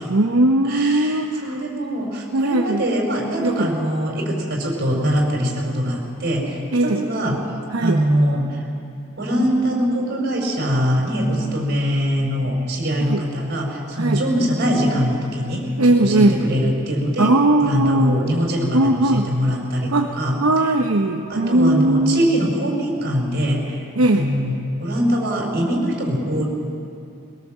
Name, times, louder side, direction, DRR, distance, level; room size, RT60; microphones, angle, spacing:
voice 1, 0.1-1.6 2.3-2.8 3.4-3.7 6.7-7.1 7.7-8.0 13.0-13.3 13.9-14.2 15.8-16.4 17.2-18.2 18.7-19.3 19.9-20.1 20.4-22.2 24.0-24.3, right 1 dB, 75° right, 2 dB, 1.0 m, -18 dB
voice 2, 0.7-7.4 7.8-8.5 9.2-15.7 16.0-17.3 17.6-20.3 21.3-23.8 24.1-26.4, equal, 50° right, 0 dB, 4.7 m, -22 dB
21.5 x 18.5 x 7.5 m, 2.5 s
head